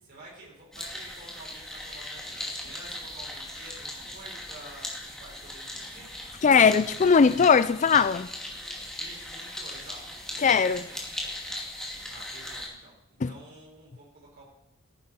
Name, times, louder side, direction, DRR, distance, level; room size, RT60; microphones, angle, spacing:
voice 1, 0.0-6.1 9.0-10.0 10.7-11.0 12.1-14.4, right 2 dB, 50° right, -5 dB, 4.8 m, -49 dB
Ants. Hormigas, 0.7-12.7, left 1 dB, 5° left, 2.5 m, -39 dB
voice 2, 6.4-8.3 10.4-10.9 13.2-13.3, left 5 dB, 35° left, 15 dB, 0.4 m, -20 dB
16.5 x 9.9 x 4.5 m, 0.83 s
head